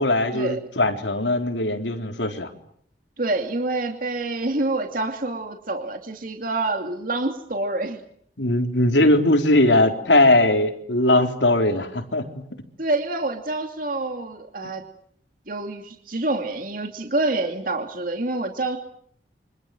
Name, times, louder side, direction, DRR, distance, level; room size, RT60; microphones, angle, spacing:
voice 1, 0.0-2.5 8.4-12.4, left 1 dB, 85° left, 5 dB, 4.0 m, -20 dB
voice 2, 3.2-8.0 12.8-14.8 15.5-18.8, right 2 dB, 50° right, 4 dB, 2.6 m, -27 dB
29.0 x 26.0 x 7.9 m, 0.66 s
head